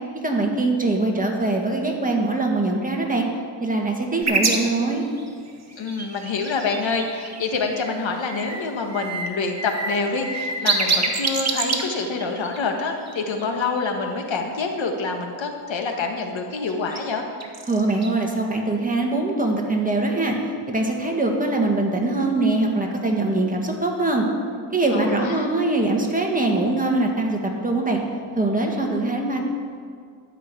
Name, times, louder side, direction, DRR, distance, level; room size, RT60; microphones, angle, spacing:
voice 1, 0.2-3.3 3.6-5.0 17.7-20.4 20.7-24.3 24.7-28.0 28.4-29.4, right 2 dB, 15° right, 1 dB, 1.8 m, -22 dB
sound 1, 4.2-7.9 8.2-8.6 8.9-14.1 16.7-17.0 17.4-18.1, right 3 dB, 35° right, 1.5 m, -27 dB
voice 2, 5.8-17.2 24.9-25.5, left 4 dB, 70° left, 3 dB, 1.6 m, -26 dB
12.5 x 6.1 x 8.8 m, 2.1 s
wide cardioid pair, 110°, 47 cm